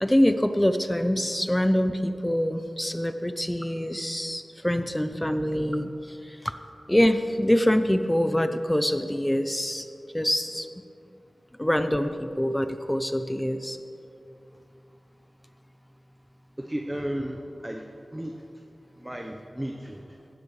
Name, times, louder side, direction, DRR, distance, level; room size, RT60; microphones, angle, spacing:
voice 1, 0.0-6.6 6.9-9.9 10.1-10.7 11.6-13.8, equal, 10° left, 9 dB, 0.6 m, -25 dB
voice 2, 16.6-18.4 19.0-20.2, equal, 15° right, 3 dB, 0.9 m, -34 dB
17.0 x 12.5 x 3.3 m, 2.7 s
cardioid pair, 45°, 0 cm